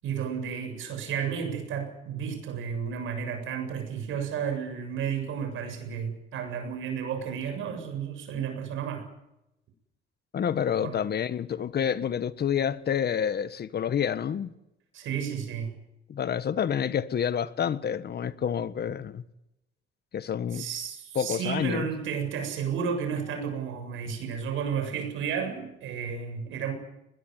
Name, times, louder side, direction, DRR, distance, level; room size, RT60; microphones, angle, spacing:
voice 1, 0.0-9.1 10.8-11.0 14.9-15.7 20.5-26.7, right 7 dB, 85° right, 7.7 m, -32 dB
voice 2, 10.3-14.5 16.1-19.2 20.1-20.6 21.1-21.9, left 8 dB, 55° left, 1.5 m, -28 dB
21.5 x 21.0 x 9.6 m
cardioid pair, 90°, 20 cm